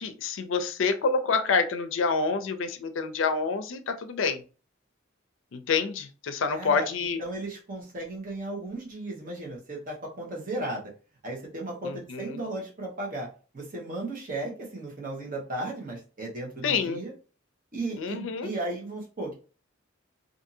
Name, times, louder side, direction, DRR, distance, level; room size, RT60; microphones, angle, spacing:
voice 1, 0.0-4.4 5.5-7.2 11.8-12.4 16.6-17.0 18.0-18.5, left 4 dB, 70° left, 9 dB, 0.4 m, -27 dB
voice 2, 6.5-10.9 11.2-13.3 13.5-17.1 17.7-19.3, right 2 dB, 45° right, -2 dB, 1.1 m, -35 dB
2.6 x 2.6 x 2.6 m, 0.36 s
head